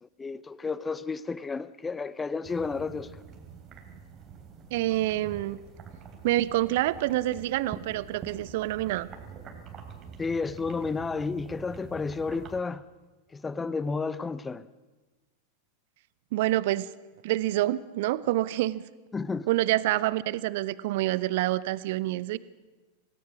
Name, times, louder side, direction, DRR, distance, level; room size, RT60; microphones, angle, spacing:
voice 1, 0.0-3.1 10.2-12.8 13.3-14.6 19.1-19.5, left 4 dB, 15° left, 0.8 m, -32 dB
sound 1, 2.4-12.6, right 6 dB, 30° right, 3.4 m, -46 dB
voice 2, 4.7-5.6 6.2-9.1 16.3-16.9 17.2-18.8 19.5-22.4, right 16 dB, 50° right, 0.8 m, -27 dB
26.0 x 18.0 x 6.3 m
figure-of-eight pair, 90°, 0 cm